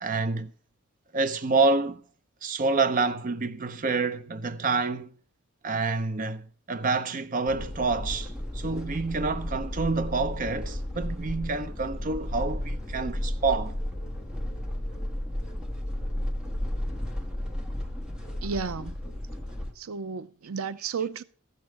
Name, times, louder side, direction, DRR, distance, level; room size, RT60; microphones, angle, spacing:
voice 1, 0.0-0.5 1.1-2.0 2.4-5.1 5.6-13.7, right 3 dB, 40° right, 0.6 m, -28 dB
sound 1, 7.5-19.7, left 1 dB, 5° right, 1.3 m, -33 dB
voice 2, 18.4-19.0 19.8-21.2, right 5 dB, 85° right, 0.5 m, -33 dB
14.0 x 6.6 x 5.9 m
head